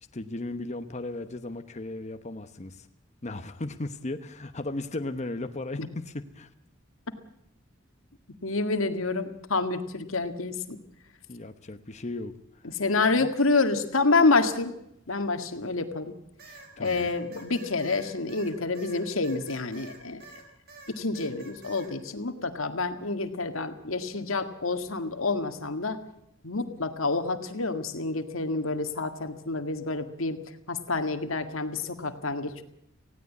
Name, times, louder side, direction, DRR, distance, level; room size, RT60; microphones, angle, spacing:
voice 1, 0.1-2.9 3.2-6.5 11.3-12.7 13.1-13.3 16.8-17.1, left 2 dB, 35° left, 8 dB, 1.0 m, -36 dB
voice 2, 8.4-10.8 12.8-14.7 15.1-16.1 16.8-20.2 20.9-26.0 26.4-30.4 30.7-32.6, left 3 dB, 85° left, 8 dB, 1.9 m, -28 dB
sound 1, 16.4-20.4 20.7-21.9, right 4 dB, 50° right, 5.0 m, -49 dB
19.0 x 16.0 x 8.4 m, 0.79 s
head